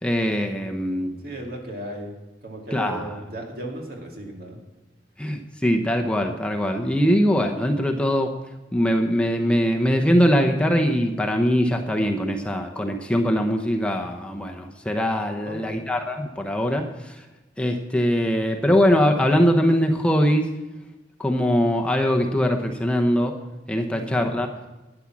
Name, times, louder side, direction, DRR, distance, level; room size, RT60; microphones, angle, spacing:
voice 1, 0.0-1.2 2.7-3.1 5.2-8.3 8.7-17.2 17.6-20.5 21.2-23.4 23.7-24.5, equal, 5° left, 2 dB, 0.9 m, -22 dB
voice 2, 1.2-2.2 2.4-4.6 15.4-15.8 23.9-24.4, right 1 dB, 60° right, 1 dB, 2.5 m, -36 dB
12.5 x 9.9 x 6.1 m, 1.1 s
head